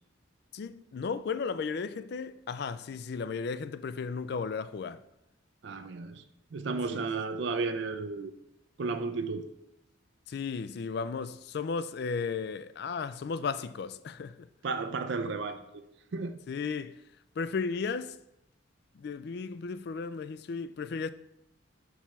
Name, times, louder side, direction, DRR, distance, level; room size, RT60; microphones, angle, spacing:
voice 1, 0.5-5.0 6.9-7.0 10.3-14.5 16.5-17.0 17.4-18.2 18.9-21.1, left 5 dB, 55° left, 0.3 m, -35 dB
voice 2, 5.6-6.2 6.5-8.3 8.8-9.5 14.6-15.6 16.1-16.4, right 4 dB, 60° right, 0.4 m, -33 dB
5.5 x 4.7 x 5.8 m
head